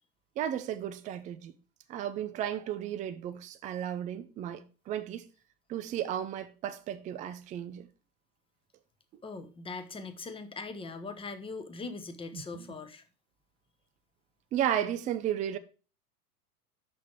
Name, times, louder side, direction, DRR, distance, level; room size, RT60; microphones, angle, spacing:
voice 1, 0.4-1.6 1.9-5.3 5.7-7.9 9.1-9.2 12.3-12.4 12.7-12.8 14.5-15.6, right 10 dB, 15° right, 0.4 m, -34 dB
voice 2, 9.2-13.0, left 3 dB, 10° left, 0.8 m, -41 dB
6.1 x 5.9 x 4.6 m
hypercardioid pair, 95°, 48 cm